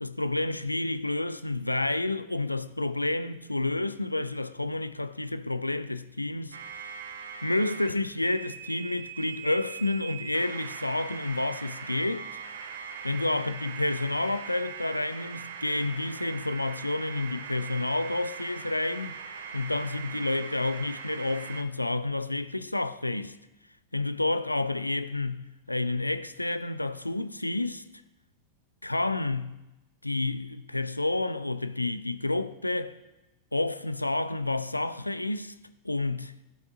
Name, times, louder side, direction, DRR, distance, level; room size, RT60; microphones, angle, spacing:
voice 1, 0.0-6.6 7.4-12.3 13.0-19.2 19.5-23.4 23.9-27.8 28.8-29.6 30.0-33.0 33.5-35.5 35.8-36.3, left 2 dB, 85° left, 0.3 m, -30 dB
sound 1, 6.5-7.9 8.2-21.6, right 6 dB, 60° right, 0.5 m, -41 dB
13.5 x 5.8 x 2.6 m
figure-of-eight pair, 90°, 0 cm